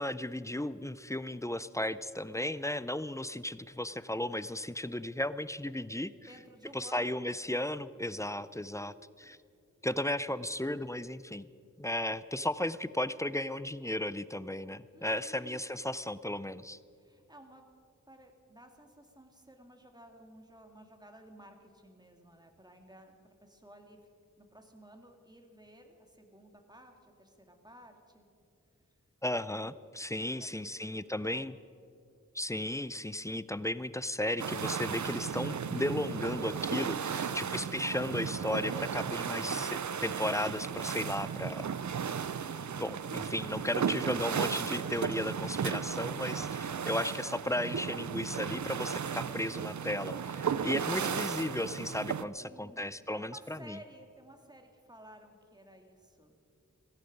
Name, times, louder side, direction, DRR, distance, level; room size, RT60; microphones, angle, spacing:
voice 1, 0.0-6.1 6.7-9.4 9.8-11.5 11.8-16.8 29.2-31.5 32.3-41.7 42.8-53.8, left 1 dB, 10° left, 16 dB, 0.4 m, -35 dB
voice 2, 6.3-7.2 8.8-9.3 14.9-15.7 16.9-17.6 18.1-24.0 24.4-28.3 30.4-31.5 43.4-43.6 50.9-51.2 52.4-52.9 53.1-56.4, right 1 dB, 15° right, 4 dB, 2.0 m, -54 dB
sound 1, 34.4-52.2, right 7 dB, 65° right, 0.6 m, -35 dB
16.0 x 15.5 x 5.2 m, 2.4 s
wide cardioid pair, 55°, 31 cm